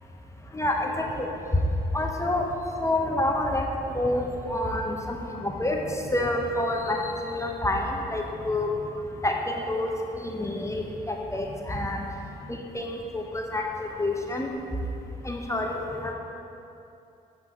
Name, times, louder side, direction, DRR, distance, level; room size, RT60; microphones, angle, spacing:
voice 1, 0.5-1.3 1.9-2.5 2.8-3.7 3.9-5.8 6.1-8.7 9.2-9.9 10.2-12.0 12.5-14.5 15.2-16.1, left 1 dB, 15° left, 0 dB, 0.9 m, -28 dB
8.1 x 4.6 x 5.2 m, 2.7 s
hypercardioid pair, 45°, 21 cm